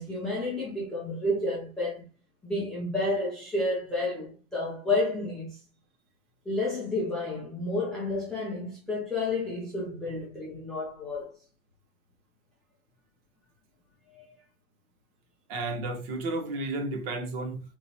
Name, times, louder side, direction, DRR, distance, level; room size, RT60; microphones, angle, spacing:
voice 1, 0.0-2.0 2.4-5.6 6.5-11.3 14.2-14.3, left 2 dB, ahead, 0.4 m, -30 dB
voice 2, 15.5-17.6, right 2 dB, 45° right, 1.1 m, -32 dB
4.9 x 3.1 x 2.8 m
supercardioid pair, 150°, 42 cm